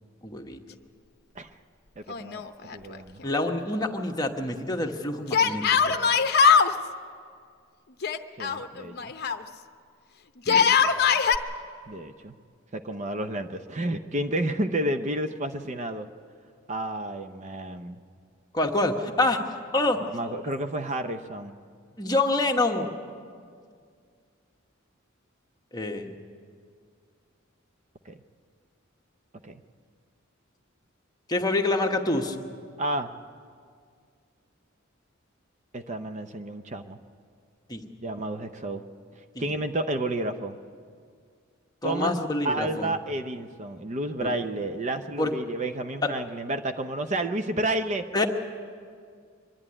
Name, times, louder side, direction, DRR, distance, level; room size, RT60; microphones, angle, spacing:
voice 1, 0.2-0.6 3.2-6.0 10.5-10.8 18.5-19.4 19.7-20.0 22.0-22.9 25.7-26.1 31.3-32.4 37.7-37.8 39.3-39.5 41.8-42.9 44.2-44.3 45.2-45.3 46.0-46.1 48.1-48.3, left 2 dB, 20° left, 3 dB, 1.2 m, -26 dB
voice 2, 2.0-2.4 2.7-3.2 8.4-9.1 11.9-12.3 12.7-16.1 16.7-18.0 20.0-21.5 28.1-28.2 29.4-29.6 32.8-33.1 35.7-37.0 38.0-38.8 39.4-40.6 41.8-42.2 42.4-48.1, right 1 dB, 35° right, 7 dB, 0.7 m, -31 dB
Yell, 2.1-3.0 3.2-3.3 5.3-6.7 8.0-9.4 10.4-11.4, left 6 dB, 50° left, 0.7 m, -21 dB
24.0 x 11.0 x 9.8 m, 2.1 s
head